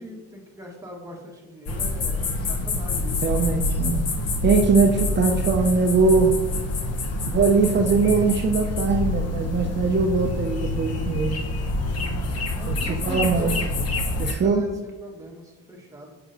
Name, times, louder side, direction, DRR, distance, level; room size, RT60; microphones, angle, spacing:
voice 1, 0.0-3.4 7.1-7.4 12.5-13.9 14.3-16.2, equal, 10° right, -1 dB, 1.4 m, -39 dB
sound 1, 1.7-14.3, left 2 dB, 55° left, 0.9 m, -26 dB
voice 2, 3.2-4.0 4.4-6.4 7.3-11.3 12.6-12.7 13.0-13.5 14.2-14.6, right 4 dB, 35° right, 3 dB, 0.6 m, -21 dB
6.7 x 6.0 x 2.6 m, 1.2 s
cardioid pair, 90°, 30 cm